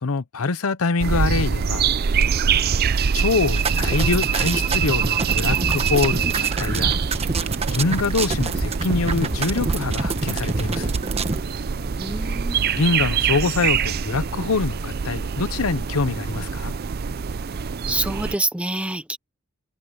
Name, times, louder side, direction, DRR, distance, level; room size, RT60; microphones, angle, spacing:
voice 1, 0.0-1.9 3.1-7.0 7.7-10.9 12.7-16.7, left 3 dB, 85° left, 0.8 m, -24 dB
sound 1, 1.0-18.4, right 6 dB, 45° right, 0.5 m, -24 dB
sound 2, 3.5-11.4, right 3 dB, 30° right, 1.1 m, -27 dB
sound 3, 9.9-15.3, equal, 30° left, 6.3 m, -45 dB
voice 2, 11.8-12.6 17.9-19.2, right 2 dB, 5° right, 0.7 m, -27 dB
head